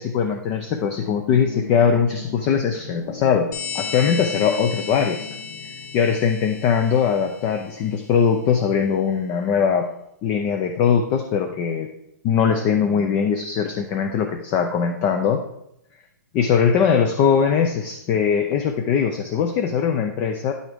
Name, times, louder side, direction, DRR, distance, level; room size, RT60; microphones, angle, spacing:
voice 1, 0.0-3.5 3.7-5.3 5.9-9.9 10.2-11.9 12.2-15.4 16.3-20.5, left 7 dB, 20° left, 5 dB, 0.4 m, -21 dB
sound 1, 1.0-6.2, left 5 dB, 90° left, 1.1 m, -38 dB
sound 2, 3.5-7.8, left 5 dB, 60° left, 2.0 m, -34 dB
9.6 x 6.2 x 3.5 m, 0.79 s
hypercardioid pair, 170°, 10 cm